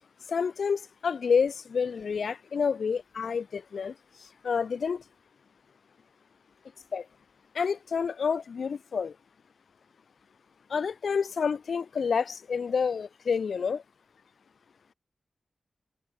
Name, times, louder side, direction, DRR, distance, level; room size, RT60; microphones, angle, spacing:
voice 1, 0.3-3.9 4.4-5.0 6.9-7.0 7.5-9.1 10.7-13.8, left 6 dB, 85° left, 1.4 m, -28 dB
wide cardioid pair, 120°, 0 cm